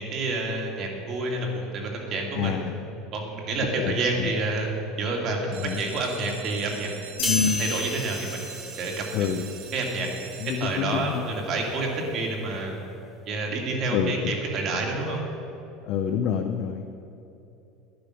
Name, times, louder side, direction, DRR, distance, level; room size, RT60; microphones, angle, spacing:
voice 1, 0.0-2.6 3.1-4.7 5.0-7.1 7.6-8.5 8.8-9.0 9.7-10.1 10.6-12.8 13.3-15.2, right 2 dB, 40° right, 0 dB, 2.3 m, -29 dB
voice 2, 2.4-2.8 3.8-4.3 5.5-5.8 7.3-7.6 9.1-9.5 10.4-11.3 13.9-14.3 15.9-17.1, left 8 dB, 50° left, 5 dB, 0.7 m, -27 dB
sound 1, 5.4-11.1 11.8-12.2 12.6-12.7 13.0-13.1 13.5-13.6, right 9 dB, 75° right, 1.0 m, -43 dB
sound 2, 7.2-9.1, left 4 dB, 90° left, 2.3 m, -31 dB
sound 3, 7.2-10.8 11.1-11.4, right 3 dB, 10° right, 0.5 m, -38 dB
11.5 x 10.5 x 6.3 m, 2.9 s
cardioid pair, 150°, 0 cm